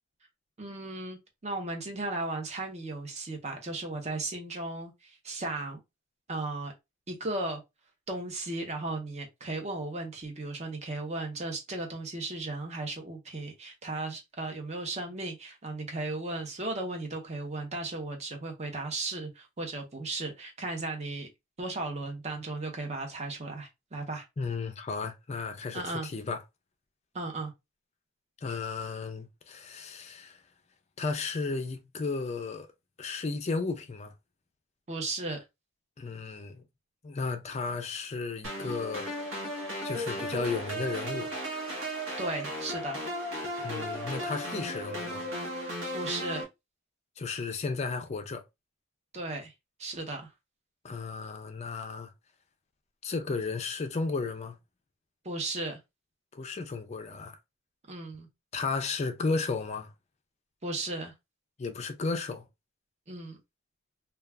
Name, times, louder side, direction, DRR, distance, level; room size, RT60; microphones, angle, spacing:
voice 1, 0.6-5.8 6.3-6.7 7.1-7.6 8.1-21.3 21.6-24.3 25.7-26.1 27.1-27.5 34.9-35.4 42.2-43.0 45.9-46.4 49.1-49.5 49.8-50.3 55.2-55.8 57.9-58.3 60.6-61.1 63.1-63.4, right 2 dB, 30° right, 0.7 m, -35 dB
voice 2, 24.4-26.4 28.4-30.4 31.0-32.7 33.0-34.1 36.0-36.6 37.0-39.1 39.8-41.3 43.6-45.3 47.2-48.4 50.8-52.1 53.0-54.6 56.3-57.4 58.5-59.9 61.6-62.4, left 4 dB, 30° left, 0.4 m, -34 dB
sound 1, 38.4-46.4, equal, 70° right, 1.0 m, -35 dB
2.3 x 2.3 x 3.2 m
head